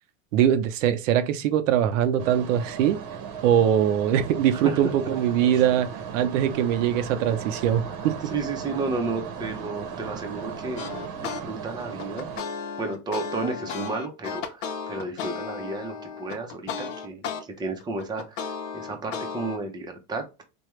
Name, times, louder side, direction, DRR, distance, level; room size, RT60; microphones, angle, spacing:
voice 1, 0.3-3.0 3.4-8.3, right 10 dB, 80° right, 0.6 m, -22 dB
sound 1, 2.2-12.4, right 6 dB, 50° right, 0.8 m, -37 dB
voice 2, 8.3-12.3 12.8-17.2 17.6-18.4 18.7-20.2, right 3 dB, 10° right, 0.5 m, -32 dB
sound 2, 10.8-11.4 11.8-17.4 17.8-19.6, left 6 dB, 80° left, 0.8 m, -34 dB
3.4 x 2.2 x 3.0 m
supercardioid pair, 120°, 38 cm